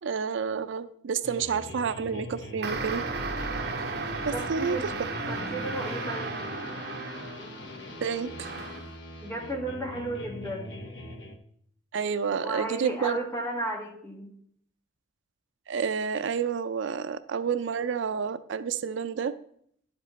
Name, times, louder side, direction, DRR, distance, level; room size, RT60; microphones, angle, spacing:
voice 1, 0.0-3.0 4.2-4.9 8.0-8.5 11.9-13.2 15.7-19.3, right 6 dB, 70° right, 12 dB, 0.4 m, -29 dB
sound 1, 1.2-11.4, left 1 dB, 65° left, 0.9 m, -41 dB
sound 2, 2.6-7.7 8.4-8.9, right 3 dB, 55° right, 1.2 m, -35 dB
voice 2, 4.3-4.9 5.3-6.4 9.2-10.8 12.4-14.3, right 2 dB, 15° left, 0 dB, 1.6 m, -34 dB
11.5 x 5.3 x 4.0 m, 0.66 s
head